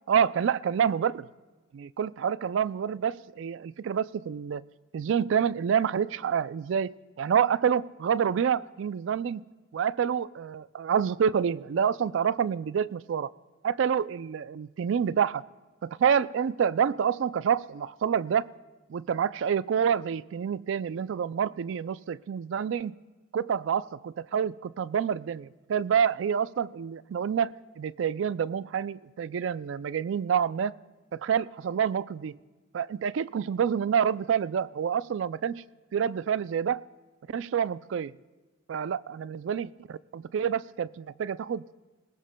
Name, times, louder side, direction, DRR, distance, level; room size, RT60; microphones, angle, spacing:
voice 1, 0.1-1.3 1.7-4.7 4.9-9.4 9.7-13.3 13.6-15.4 15.8-18.5 18.9-22.9 23.3-30.7 31.1-32.4 32.7-35.6 35.9-36.8 37.3-38.1 38.7-41.6, right 7 dB, 65° right, 17 dB, 0.3 m, -28 dB
21.5 x 19.5 x 2.2 m, 1.2 s
head